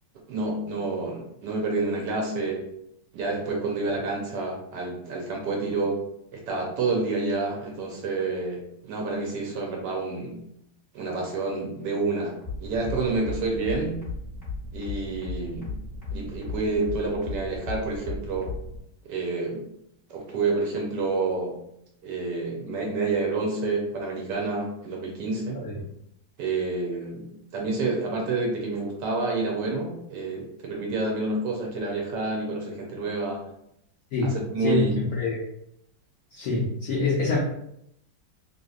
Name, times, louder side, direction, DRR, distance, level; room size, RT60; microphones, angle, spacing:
voice 1, 0.3-2.6 3.1-6.0 6.3-10.4 10.9-14.0 14.7-15.8 16.1-18.5 19.0-19.7 20.1-21.6 22.0-25.6 26.4-27.3 27.5-33.4 34.2-34.9, right 3 dB, 70° right, -1 dB, 1.1 m, -28 dB
sound 1, 12.4-18.8, left 4 dB, 15° right, 0.9 m, -35 dB
voice 2, 34.6-35.4 36.3-37.4, left 3 dB, 80° left, -4 dB, 0.8 m, -25 dB
3.2 x 2.7 x 2.3 m, 0.76 s
omnidirectional pair, 2.2 m